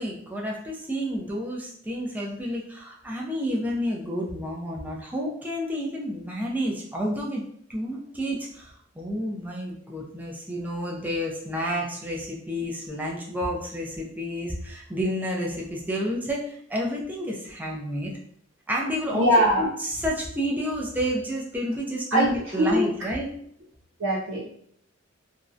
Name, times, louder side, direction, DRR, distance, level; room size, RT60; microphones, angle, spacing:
voice 1, 0.0-7.4 7.7-18.1 18.7-19.3 19.6-23.3, equal, 10° right, -2 dB, 0.4 m, -30 dB
voice 2, 19.1-19.7 22.1-22.3 22.6-22.9 24.0-24.5, equal, 90° right, -7 dB, 0.6 m, -22 dB
2.6 x 2.1 x 2.4 m, 0.67 s
head